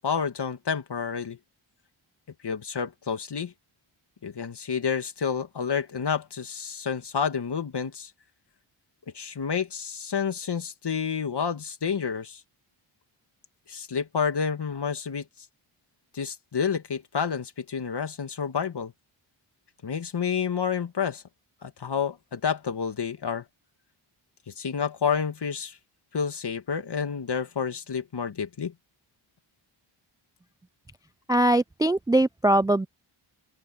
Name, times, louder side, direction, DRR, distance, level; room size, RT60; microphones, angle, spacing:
voice 1, 0.0-1.4 2.4-3.5 4.2-8.1 9.1-12.4 13.7-15.2 16.1-18.9 19.8-21.2 21.6-23.4 24.5-25.8 26.1-28.7, left 6 dB, 50° left, 2.1 m, -29 dB
voice 2, 31.3-32.9, right 1 dB, 10° right, 0.3 m, -21 dB
open air
cardioid pair, 75°, 50 cm